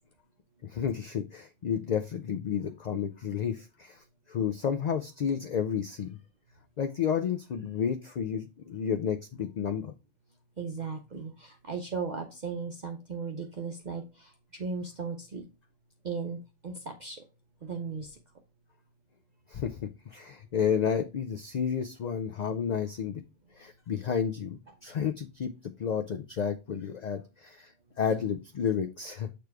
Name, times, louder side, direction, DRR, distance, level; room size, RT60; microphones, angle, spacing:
voice 1, 0.6-6.2 6.8-9.9 19.5-23.2 23.6-27.7 28.0-29.3, left 7 dB, 65° left, 7 dB, 0.4 m, -31 dB
voice 2, 10.6-15.4 16.0-16.4 16.6-17.2 17.6-18.2, right 5 dB, 45° right, 4 dB, 0.7 m, -36 dB
6.7 x 3.1 x 4.6 m, 0.28 s
omnidirectional pair, 1.2 m